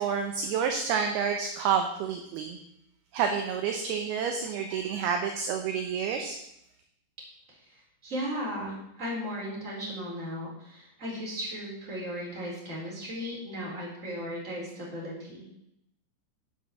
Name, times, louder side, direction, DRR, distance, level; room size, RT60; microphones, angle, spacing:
voice 1, 0.0-2.6 3.1-6.4, right 6 dB, 75° right, 4 dB, 2.5 m, -29 dB
voice 2, 7.5-15.5, equal, 20° right, -4 dB, 3.7 m, -36 dB
8.0 x 7.4 x 7.3 m, 0.80 s
omnidirectional pair, 5.0 m